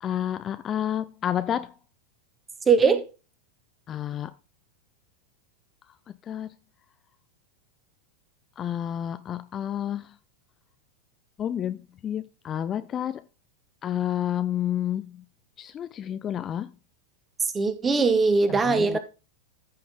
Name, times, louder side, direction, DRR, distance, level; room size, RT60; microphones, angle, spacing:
voice 1, 0.0-1.7 3.9-4.3 6.3-6.5 8.6-10.1 11.4-13.2 13.8-15.2 15.6-16.7 18.5-19.0, left 10 dB, 25° left, 0.5 m, -30 dB
voice 2, 2.7-3.0 17.5-19.0, right 4 dB, 15° right, 1.5 m, -20 dB
14.0 x 5.8 x 3.5 m
figure-of-eight pair, 90°, 0 cm